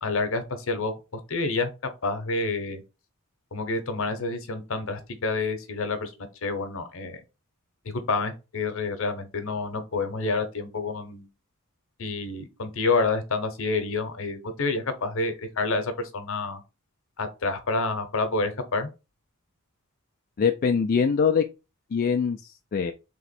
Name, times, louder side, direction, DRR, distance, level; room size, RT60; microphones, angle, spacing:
voice 1, 0.0-0.9 1.3-1.7 2.0-2.8 3.5-7.2 7.8-11.3 12.0-16.6 17.2-18.9, left 3 dB, 65° left, 0.8 m, -28 dB
voice 2, 20.4-21.4 21.9-22.9, left 6 dB, 45° left, 0.3 m, -23 dB
3.5 x 3.0 x 4.2 m
head